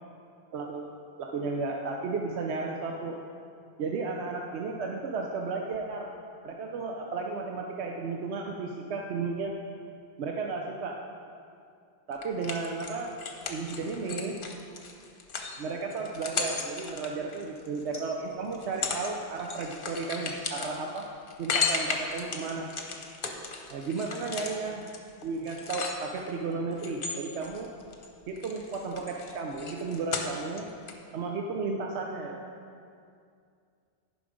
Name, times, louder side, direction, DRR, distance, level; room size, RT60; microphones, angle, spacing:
voice 1, 0.5-0.9 1.2-3.2 3.8-6.2 6.4-9.5 10.2-11.0 12.1-13.1 13.5-14.4 15.6-21.0 21.4-22.7 23.7-24.9 25.2-27.7 28.3-30.7 31.1-32.4, right 4 dB, 75° right, 1 dB, 0.9 m, -33 dB
sound 1, 12.2-18.0 18.5-19.1 19.4-26.3 26.8-28.1 28.4-30.6 30.9-31.0, left 5 dB, 55° left, 0.9 m, -35 dB
10.5 x 5.4 x 5.1 m, 2.4 s
omnidirectional pair, 1.2 m